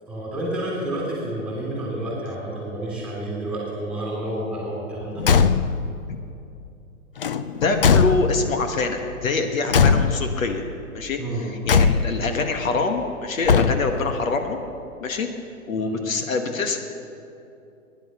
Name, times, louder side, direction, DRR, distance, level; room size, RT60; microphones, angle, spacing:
voice 1, 0.1-5.3 11.2-11.5 15.8-16.1, right 1 dB, ahead, -4 dB, 3.4 m, -30 dB
Car / Truck / Slam, 5.2-5.9 7.2-8.6 9.7-10.5 11.7-12.3 13.4-14.1, left 6 dB, 40° left, 0.5 m, -19 dB
voice 2, 7.5-10.6 10.9-11.2 11.7-14.6 15.0-15.3 15.7-16.8, left 3 dB, 65° left, 5 dB, 1.5 m, -25 dB
16.5 x 10.5 x 6.9 m, 2.7 s
hypercardioid pair, 160°, 43 cm